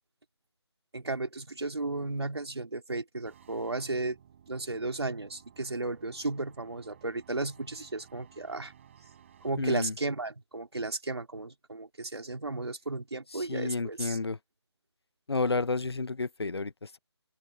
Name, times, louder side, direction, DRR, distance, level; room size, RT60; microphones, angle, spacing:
voice 1, 0.9-4.2 4.5-8.7 9.4-14.2, right 2 dB, 65° right, 4.0 m, -34 dB
sound 1, 3.3-9.5, right 9 dB, 25° right, 5.2 m, -57 dB
voice 2, 9.6-9.9 13.3-14.4 15.3-17.0, left 3 dB, 65° left, 0.9 m, -31 dB
open air
figure-of-eight pair, 155°, 15 cm